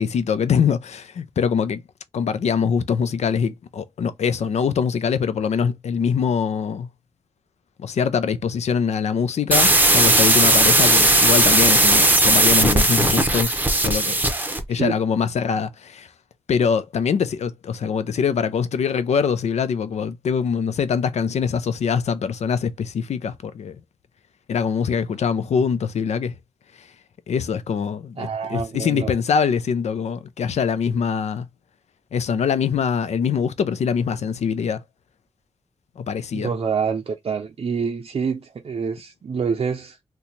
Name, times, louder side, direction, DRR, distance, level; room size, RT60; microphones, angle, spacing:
voice 1, 0.0-1.8 2.1-6.9 7.8-14.2 14.7-16.1 16.5-23.8 24.5-26.4 26.8-26.9 27.3-31.5 32.1-34.8 36.0-36.5, left 6 dB, 85° left, 0.4 m, -23 dB
sound 1, 9.5-14.6, right 2 dB, 15° right, 0.8 m, -17 dB
voice 2, 28.2-29.1 36.3-40.0, right 6 dB, 55° right, 0.5 m, -26 dB
2.8 x 2.3 x 3.9 m
cardioid pair, 75°, 11 cm